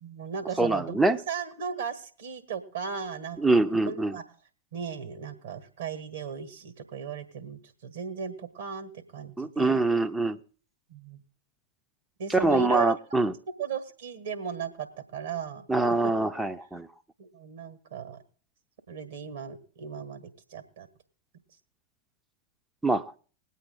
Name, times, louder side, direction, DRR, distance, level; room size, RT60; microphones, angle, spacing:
voice 1, 0.0-1.0 1.3-3.4 3.9-4.2 4.7-9.8 10.9-11.2 12.2-13.0 13.6-15.7 16.0-16.1 17.2-18.2 18.9-20.9, right 7 dB, 65° right, 8 dB, 1.6 m, -36 dB
voice 2, 0.6-1.2 3.4-4.2 9.4-10.4 12.3-13.3 15.7-16.9 22.8-23.0, right 2 dB, 5° right, 11 dB, 0.7 m, -24 dB
20.5 x 8.3 x 3.8 m, 0.40 s
figure-of-eight pair, 90°, 0 cm